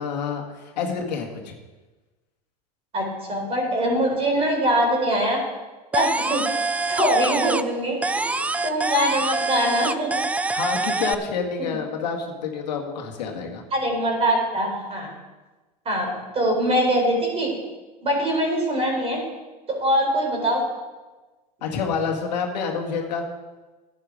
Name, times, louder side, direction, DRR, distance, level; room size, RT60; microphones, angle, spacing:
voice 1, 0.0-1.5 10.5-13.6 21.6-23.2, left 5 dB, 85° left, 2 dB, 1.9 m, -28 dB
voice 2, 2.9-5.4 5.9-10.1 11.6-11.7 13.7-15.1 15.8-17.5 18.0-19.2 19.7-20.6, equal, 30° right, 0 dB, 4.2 m, -23 dB
sound 1, 5.9-7.8 8.0-11.1, right 3 dB, 5° right, 0.3 m, -25 dB
10.5 x 9.2 x 5.1 m, 1.2 s
hypercardioid pair, 105°, 21 cm